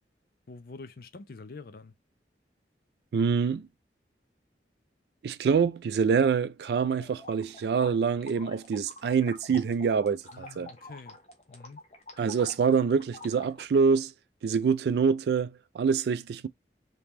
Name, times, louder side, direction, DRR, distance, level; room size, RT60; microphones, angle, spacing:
voice 1, 0.5-1.9 10.3-11.2 11.5-11.8, left 3 dB, 55° left, 0.5 m, -46 dB
voice 2, 3.1-3.7 5.2-10.7 12.2-14.1 14.4-16.5, right 6 dB, 65° right, 0.3 m, -25 dB
sound 1, 6.6-13.6, left 2 dB, 35° left, 0.9 m, -48 dB
3.0 x 2.8 x 3.5 m
head